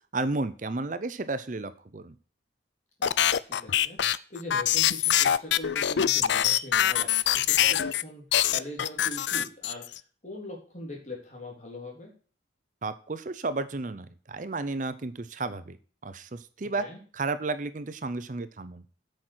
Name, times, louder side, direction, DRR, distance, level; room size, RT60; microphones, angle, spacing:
voice 1, 0.1-2.1 12.8-15.8 16.0-16.9 17.1-18.8, right 3 dB, 40° right, 13 dB, 0.6 m, -32 dB
sound 1, 3.0-8.0 8.3-10.0, left 10 dB, 70° left, 0.4 m, -24 dB
voice 2, 3.0-4.0 4.3-8.2 8.5-12.1 16.6-17.0, left 1 dB, 40° left, 0 dB, 3.5 m, -42 dB
8.5 x 6.5 x 6.2 m, 0.40 s
head